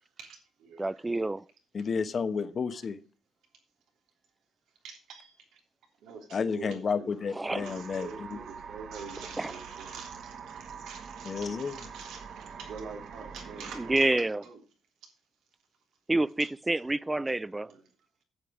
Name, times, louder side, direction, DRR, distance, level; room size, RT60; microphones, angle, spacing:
voice 1, 0.2-1.0 4.8-5.6 6.0-14.6 16.4-16.5 17.1-17.8, right 5 dB, 85° right, 3.3 m, -46 dB
voice 2, 0.8-1.4 7.4-7.6 9.4-9.5 13.9-14.4 16.1-17.7, right 2 dB, 15° right, 0.4 m, -28 dB
voice 3, 1.7-3.0 6.3-8.4 11.2-11.8, left 5 dB, 45° left, 1.1 m, -31 dB
sound 1, 7.4-14.1, right 6 dB, 60° right, 1.2 m, -44 dB
9.1 x 8.4 x 4.9 m
cardioid pair, 90°, 0 cm